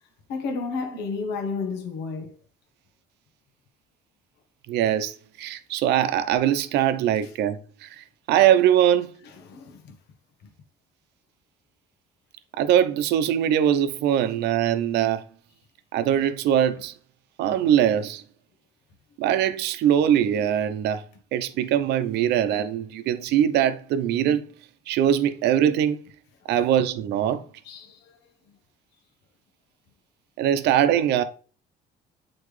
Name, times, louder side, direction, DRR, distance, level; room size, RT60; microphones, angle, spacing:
voice 1, 0.3-2.3 9.5-10.0 27.6-28.1, left 4 dB, 85° left, 1.2 m, -31 dB
voice 2, 4.7-9.1 12.6-15.2 15.9-16.9 17.4-18.2 19.2-21.0 21.3-24.4 24.9-26.0 26.5-27.4 30.4-31.2, right 10 dB, 80° right, 0.8 m, -22 dB
8.7 x 4.3 x 3.3 m
cardioid pair, 110°, 17 cm